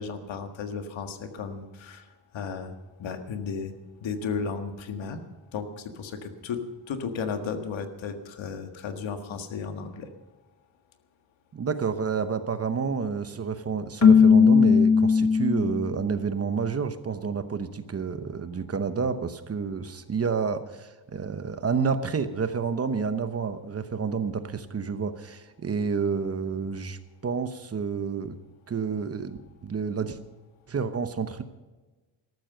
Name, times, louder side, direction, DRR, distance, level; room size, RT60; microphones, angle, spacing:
voice 1, 0.0-2.1 2.3-2.7 3.0-3.7 4.0-5.2 5.5-10.1, left 5 dB, 85° left, 7 dB, 1.7 m, -34 dB
voice 2, 11.5-28.4 28.7-30.2 30.7-31.4, right 5 dB, 30° right, 10 dB, 0.9 m, -29 dB
Keyboard (musical), 14.0-16.0, left 6 dB, 40° left, 1.1 m, -17 dB
13.5 x 13.0 x 6.7 m, 1.2 s
wide cardioid pair, 145°, 45 cm